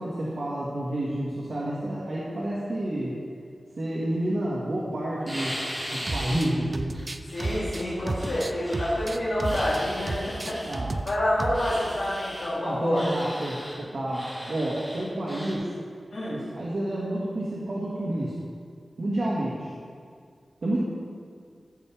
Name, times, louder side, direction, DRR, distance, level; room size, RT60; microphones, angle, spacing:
voice 1, 0.0-3.2 3.8-6.9 10.7-10.9 12.6-15.7 16.3-18.3 19.0-19.7 20.6-20.9, right 1 dB, 65° right, -6 dB, 1.8 m, -29 dB
sound 1, 5.3-6.5 6.9-9.0 9.4-10.8 11.5-12.5 12.9-13.8 14.1-15.5, equal, 15° right, 2.6 m, -38 dB
sound 2, 6.1-6.5 6.7-9.8 10.1-11.1 11.4-11.7, right 2 dB, 40° right, 0.5 m, -32 dB
voice 2, 7.3-10.6 11.0-13.0 16.1-16.4, left 1 dB, 80° left, -9 dB, 2.7 m, -27 dB
14.0 x 7.3 x 3.6 m, 2.1 s
wide cardioid pair, 95°, 0 cm